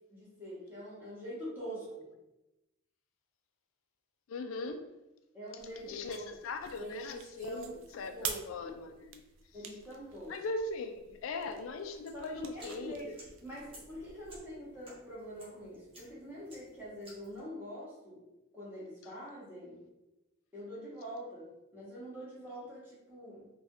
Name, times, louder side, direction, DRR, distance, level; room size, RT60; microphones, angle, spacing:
voice 1, 0.1-2.1 5.3-6.4 6.8-7.7 8.1-8.7 9.5-10.4 12.1-18.2 18.5-19.8 20.5-23.5, equal, 10° right, -8 dB, 1.2 m, -45 dB
voice 2, 4.3-4.9 5.8-9.2 10.3-13.1, left 3 dB, 85° left, 6 dB, 0.3 m, -40 dB
sound 1, 5.6-14.4, right 7 dB, 75° right, 0.3 m, -48 dB
sound 2, 12.1-17.4, equal, 30° right, 0.8 m, -57 dB
3.4 x 2.3 x 2.6 m, 0.97 s
head